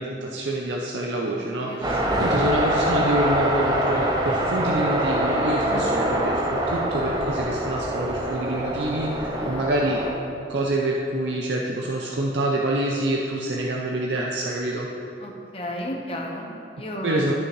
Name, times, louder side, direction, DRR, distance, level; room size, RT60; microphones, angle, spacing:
voice 1, 0.0-10.0 10.5-14.9 17.0-17.3, right 1 dB, 70° right, -2 dB, 0.6 m, -26 dB
voice 2, 1.6-2.6 5.6-5.9 9.4-9.7 15.2-17.3, left 1 dB, 30° left, 0 dB, 1.0 m, -34 dB
sound 1, 1.8-10.1, right 1 dB, 20° right, 0.7 m, -24 dB
12.0 x 6.5 x 3.1 m, 2.7 s
head